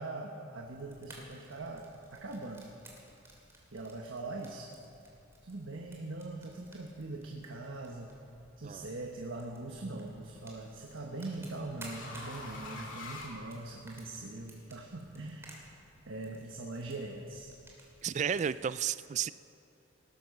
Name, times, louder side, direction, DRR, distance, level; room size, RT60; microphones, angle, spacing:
voice 1, 0.0-2.7 3.7-4.7 5.4-8.2 8.6-15.6 16.1-17.5, right 2 dB, 85° right, 0 dB, 1.2 m, -42 dB
Fire, 0.6-18.5, right 1 dB, 15° right, 2.7 m, -56 dB
sound 1, 8.2-8.7 10.2-14.1, left 2 dB, 75° left, 2.3 m, -47 dB
voice 2, 18.0-19.3, right 8 dB, 35° right, 16 dB, 0.3 m, -32 dB
18.5 x 10.5 x 6.5 m, 2.6 s
head